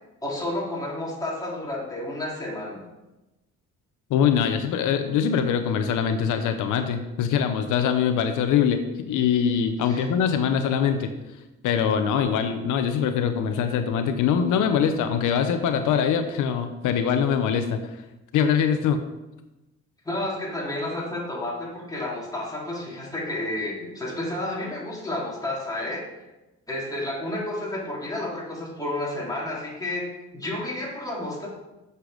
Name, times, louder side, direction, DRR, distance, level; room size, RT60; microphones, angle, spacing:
voice 1, 0.2-2.8 9.8-10.1 20.1-26.0 26.7-30.1 30.3-31.5, left 1 dB, 10° left, -5 dB, 3.5 m, -31 dB
voice 2, 4.1-11.1 11.6-17.8 18.3-19.0, left 7 dB, 85° left, 7 dB, 0.8 m, -23 dB
8.1 x 6.7 x 5.1 m, 1.0 s
cardioid pair, 90°, 30 cm